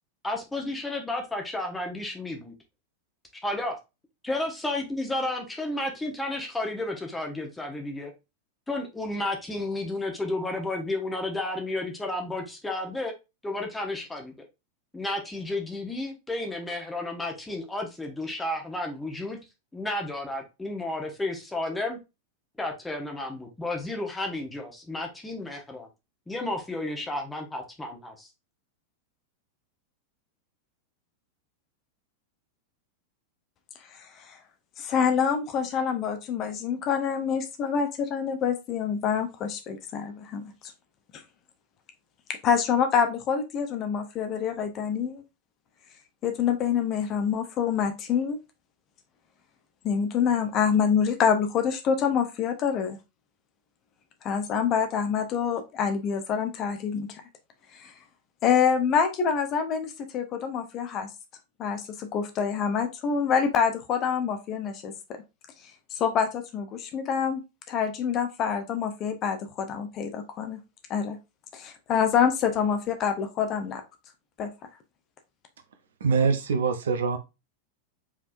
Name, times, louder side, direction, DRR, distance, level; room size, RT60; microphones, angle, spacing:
voice 1, 0.2-2.5 3.4-3.8 4.2-8.1 8.7-13.1 13.4-14.3 14.9-19.4 19.7-22.0 22.6-25.9 26.3-28.3, left 2 dB, 10° left, 2 dB, 1.0 m, -32 dB
voice 2, 33.9-34.4 34.8-40.4 42.4-45.2 46.2-48.4 49.8-53.0 54.2-57.1 57.8-57.9 58.4-61.1 61.6-64.9 65.9-67.4 67.7-70.6 70.9-71.2 71.5-73.8 74.4-74.5, left 7 dB, 35° left, 6 dB, 0.8 m, -26 dB
voice 3, 76.0-77.2, right 5 dB, 65° right, 9 dB, 0.8 m, -24 dB
4.9 x 3.5 x 2.6 m, 0.25 s
figure-of-eight pair, 90°, 0 cm